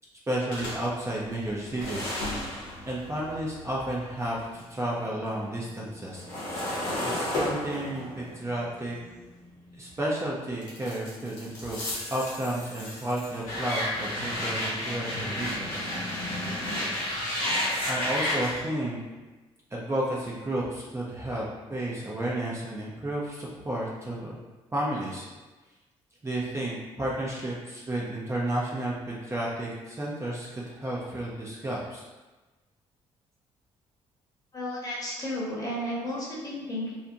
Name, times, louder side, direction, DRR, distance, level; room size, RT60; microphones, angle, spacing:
voice 1, 0.3-2.2 2.9-6.2 7.2-9.0 9.8-15.9 17.9-19.0 19.7-24.4 24.7-25.3 26.2-32.0, right 1 dB, 20° right, -5 dB, 0.6 m, -32 dB
sound 1, 0.5-4.8 5.1-10.0 10.6-18.6, left 1 dB, 90° left, 0.8 m, -33 dB
voice 2, 34.5-36.9, left 1 dB, 30° left, -5 dB, 1.0 m, -33 dB
2.5 x 2.1 x 2.7 m, 1.2 s
supercardioid pair, 60°, 13 cm